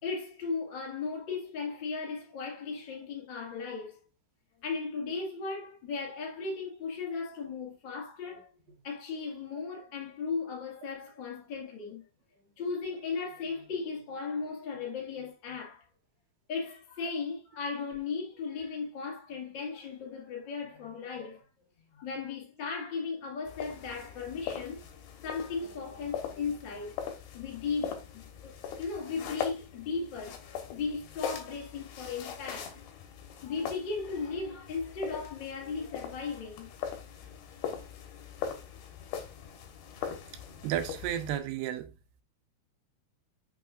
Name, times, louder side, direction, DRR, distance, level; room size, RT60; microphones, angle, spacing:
voice 1, 0.0-4.0 4.6-8.5 8.8-12.1 12.6-15.9 16.5-21.4 21.9-24.8 25.2-27.0 27.3-32.8 33.4-36.7 37.2-37.4, left 4 dB, 35° left, 2.0 m, -36 dB
sound 1, 23.4-41.4, left 8 dB, 85° left, 3.3 m, -41 dB
voice 2, 40.6-41.9, right 11 dB, 90° right, 3.0 m, -32 dB
6.7 x 6.1 x 2.5 m
omnidirectional pair, 4.6 m